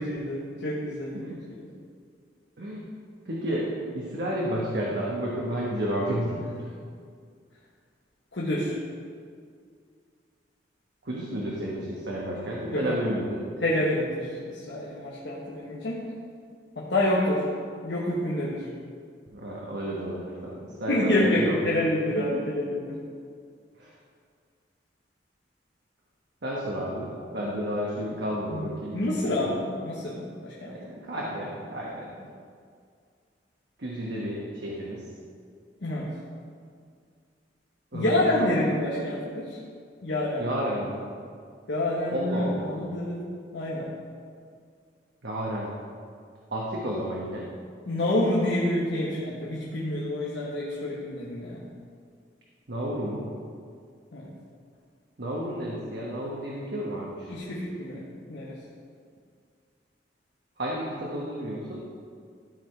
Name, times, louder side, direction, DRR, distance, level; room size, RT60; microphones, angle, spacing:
voice 1, 0.0-1.2 8.3-8.8 12.7-13.0 13.6-16.0 16.8-17.5 17.8-18.7 20.9-23.0 28.5-30.7 35.8-36.1 37.9-39.6 40.0-40.4 41.7-43.2 43.5-43.9 47.9-51.7 54.1-54.3 57.3-58.6, left 1 dB, 75° left, -6 dB, 1.2 m, -28 dB
voice 2, 2.6-2.9 3.2-3.7 3.9-6.7 11.0-13.4 19.3-21.5 22.1-22.4 23.7-23.9 26.4-29.5 30.6-32.3 33.8-35.0 37.9-38.7 40.4-41.1 42.1-42.8 45.2-45.7 46.5-47.4 52.7-53.3 55.2-57.3 60.6-61.8, equal, 70° right, -4 dB, 1.2 m, -32 dB
13.5 x 5.0 x 4.5 m, 2.2 s
head